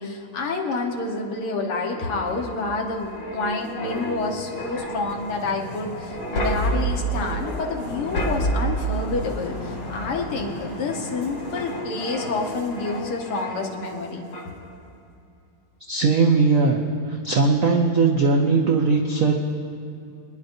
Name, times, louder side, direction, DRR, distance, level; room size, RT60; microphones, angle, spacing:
voice 1, 0.0-14.2, left 3 dB, 85° left, 0 dB, 2.3 m, -28 dB
sound 1, 1.6-14.0 14.3-14.6, right 1 dB, 65° left, 2.7 m, -30 dB
voice 2, 15.9-16.8 17.1-19.3, right 4 dB, 90° right, 1 dB, 0.7 m, -19 dB
27.0 x 10.5 x 2.7 m, 2.5 s
omnidirectional pair, 2.4 m